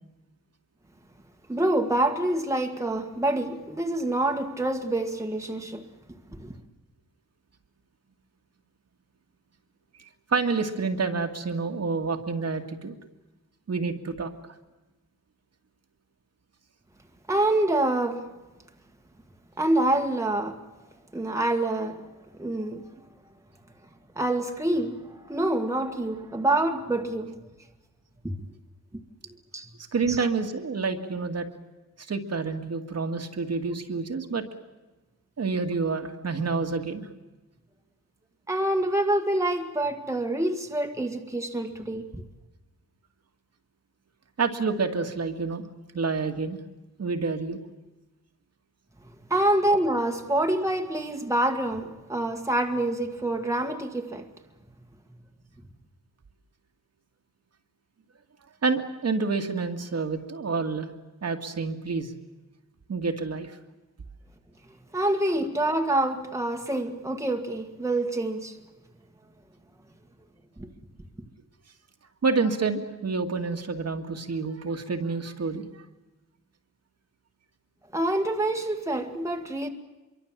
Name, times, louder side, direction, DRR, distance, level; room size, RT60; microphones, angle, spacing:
voice 1, 1.5-5.8 6.4-6.5 17.3-18.2 19.6-20.6 21.1-22.0 22.4-22.9 24.2-27.4 28.2-28.4 29.5-29.7 30.1-30.2 38.5-42.2 49.3-54.2 64.9-68.6 70.6-70.7 77.9-79.7, right 1 dB, 10° right, 1.8 m, -26 dB
voice 2, 10.0-12.9 13.7-14.3 29.9-31.5 32.1-34.5 35.4-37.1 44.4-45.7 45.9-46.6 47.0-47.6 58.6-60.9 61.2-62.1 62.9-63.6 72.2-75.8, right 4 dB, 55° right, 2.1 m, -28 dB
26.0 x 23.5 x 7.5 m
wide cardioid pair, 160°, 32 cm